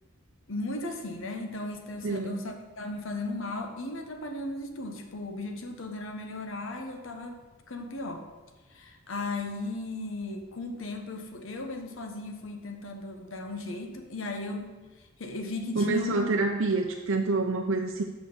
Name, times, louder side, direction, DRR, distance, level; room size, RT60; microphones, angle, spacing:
voice 1, 0.5-7.4 7.7-8.2 8.7-14.7 15.2-16.2, left 2 dB, 70° left, 5 dB, 1.1 m, -36 dB
voice 2, 2.0-2.4 15.8-18.0, right 3 dB, 65° right, 2 dB, 0.6 m, -27 dB
6.3 x 6.0 x 7.0 m, 1.2 s
head